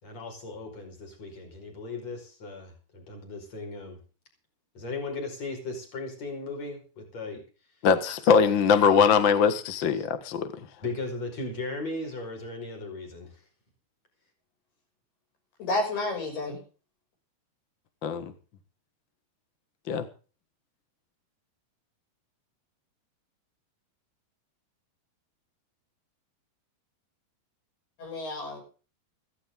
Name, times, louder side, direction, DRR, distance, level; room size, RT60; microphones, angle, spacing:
voice 1, 0.0-4.0 4.7-7.4 8.1-8.2 9.9-10.0 10.8-13.4, left 3 dB, 40° left, 2 dB, 6.0 m, -37 dB
voice 2, 7.8-10.5 18.0-18.3 19.9-20.0, left 6 dB, 60° left, 10 dB, 1.2 m, -22 dB
voice 3, 15.6-16.6 28.0-28.6, left 2 dB, 80° left, 1 dB, 8.4 m, -30 dB
16.0 x 15.5 x 3.7 m, 0.36 s
omnidirectional pair, 4.5 m